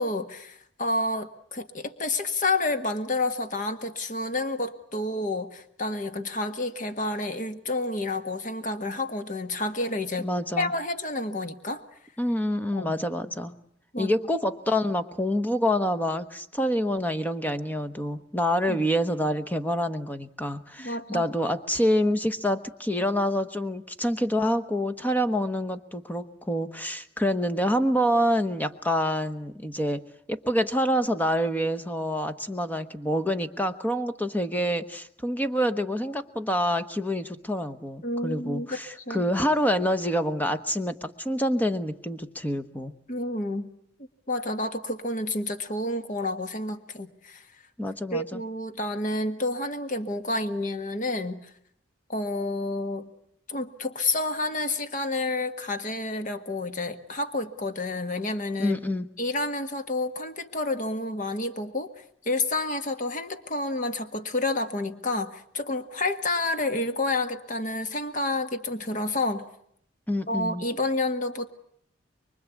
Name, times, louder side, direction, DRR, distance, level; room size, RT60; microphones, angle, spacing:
voice 1, 0.0-10.3 10.6-11.8 12.7-12.9 13.9-14.1 18.7-18.8 20.8-21.2 38.0-38.8 39.1-39.2 43.1-43.7 44.3-47.4 48.1-51.5 52.1-53.1 53.5-58.8 59.2-61.9 62.2-69.4 70.3-71.5, left 2 dB, 45° left, 8 dB, 1.6 m, -29 dB
voice 2, 10.2-10.7 12.2-13.5 14.0-42.9 47.8-48.4 58.6-59.1 70.1-70.6, equal, 10° left, 10 dB, 1.1 m, -27 dB
24.5 x 23.5 x 8.4 m, 0.69 s
head